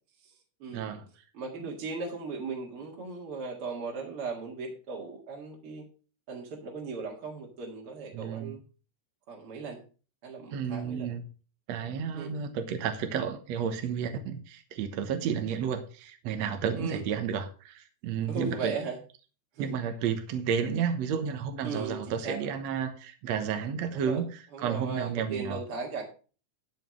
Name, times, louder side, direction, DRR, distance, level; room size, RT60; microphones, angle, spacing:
voice 1, 0.7-1.1 8.1-8.5 10.5-11.2 11.7-18.7 19.6-25.6, right 7 dB, 65° right, 7 dB, 2.3 m, -32 dB
voice 2, 1.3-5.8 6.3-8.6 9.3-9.8 10.2-11.1 12.1-12.3 16.8-17.0 18.3-19.0 19.5-19.7 21.6-22.5 23.9-24.2 24.5-26.0, right 4 dB, 50° right, -1 dB, 2.6 m, -37 dB
12.5 x 5.1 x 6.3 m, 0.37 s
omnidirectional pair, 3.5 m